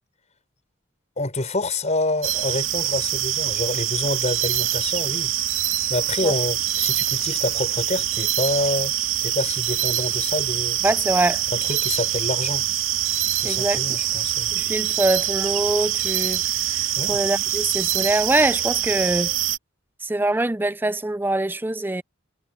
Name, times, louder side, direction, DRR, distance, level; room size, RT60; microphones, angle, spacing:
voice 1, 1.2-5.3 5.9-9.0 9.2-10.8 11.5-12.7 13.4-14.5 17.0-17.2, left 2 dB, 35° left, 6.2 m, -27 dB
sound 1, 2.2-19.6, right 12 dB, 70° right, 2.1 m, -24 dB
voice 2, 10.8-11.4 13.4-13.8 14.5-16.4 16.7-19.3 20.0-22.0, right 2 dB, 10° right, 0.5 m, -23 dB
head